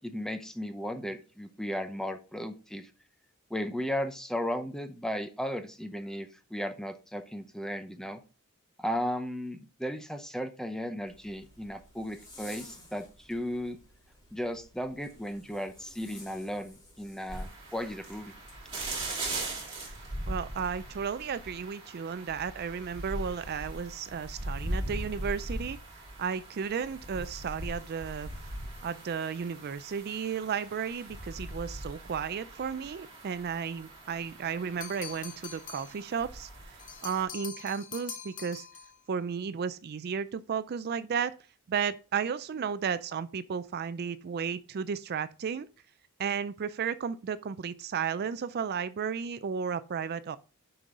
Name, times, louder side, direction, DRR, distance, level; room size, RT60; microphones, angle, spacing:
voice 1, 0.0-2.9 3.5-8.2 8.8-13.8 14.3-18.3, equal, 5° left, 0.7 m, -35 dB
Zipper (clothing), 11.1-18.6, left 1 dB, 20° left, 3.2 m, -54 dB
sound 1, 17.3-37.2, right 1 dB, 25° right, 2.9 m, -40 dB
voice 2, 20.3-28.3 28.8-38.7 39.1-41.3 41.7-45.7 46.2-50.4, right 7 dB, 45° right, 0.4 m, -34 dB
sound 2, 34.8-36.0 36.8-39.0, left 7 dB, 40° left, 0.8 m, -44 dB
6.9 x 5.3 x 3.7 m
head